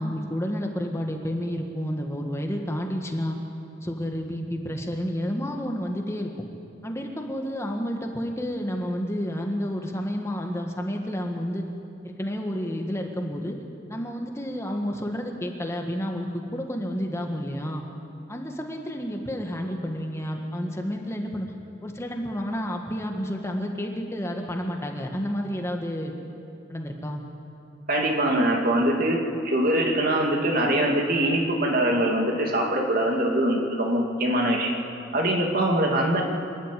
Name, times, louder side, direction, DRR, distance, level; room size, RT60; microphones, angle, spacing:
voice 1, 0.0-3.4 3.8-6.3 6.8-11.6 12.0-13.6 13.9-17.8 18.3-21.5 21.8-26.1 26.7-27.2, equal, 15° left, 2 dB, 1.6 m, -30 dB
voice 2, 27.9-34.8 35.1-36.2, right 1 dB, 50° right, 1 dB, 2.6 m, -23 dB
26.0 x 12.0 x 9.2 m, 2.6 s
head